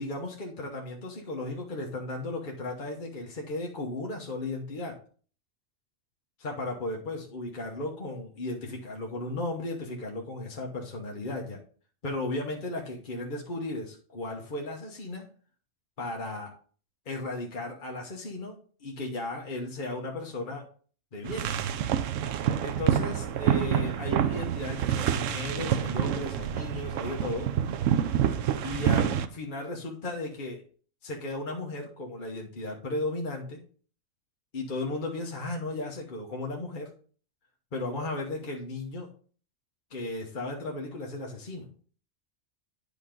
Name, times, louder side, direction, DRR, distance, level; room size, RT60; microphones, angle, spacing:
voice 1, 0.0-5.0 6.4-11.6 12.0-15.2 16.0-16.5 17.0-20.7 21.1-21.5 22.6-27.5 28.6-30.6 31.0-33.6 34.5-36.9 37.7-39.1 39.9-41.7, left 2 dB, 45° left, 0 dB, 1.2 m, -35 dB
sound 1, 21.2-29.3, right 9 dB, 90° right, 1.0 m, -27 dB
10.0 x 5.2 x 3.8 m, 0.43 s
omnidirectional pair, 1.3 m